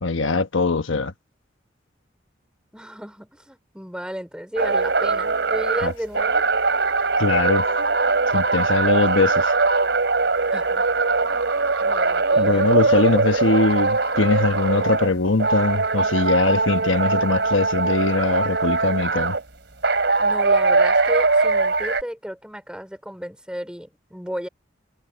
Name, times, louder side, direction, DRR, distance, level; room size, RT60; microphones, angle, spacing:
voice 1, 0.0-1.1 5.8-5.9 7.2-7.6 8.3-9.5 12.4-19.4, left 3 dB, 90° left, 1.2 m, -21 dB
voice 2, 2.7-6.4 10.5-11.1 11.8-12.7 20.2-24.5, equal, 5° right, 4.7 m, -33 dB
sound 1, 4.6-15.1 15.4-19.4 19.8-22.0, right 3 dB, 65° right, 3.6 m, -21 dB
head